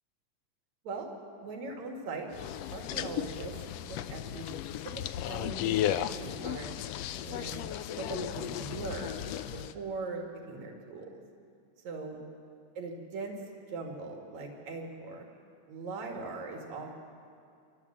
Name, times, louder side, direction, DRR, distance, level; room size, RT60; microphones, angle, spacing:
voice 1, 1.4-2.3 2.7-4.5 4.8-6.9 7.2-7.6 7.9-11.2 11.8-12.2 12.8-13.4 13.7-15.3 15.7-16.9, right 3 dB, 75° right, 1 dB, 3.4 m, -40 dB
sound 1, 2.3-9.7, left 11 dB, 75° left, 1.5 m, -35 dB
29.0 x 12.5 x 7.4 m, 2.4 s
omnidirectional pair, 3.3 m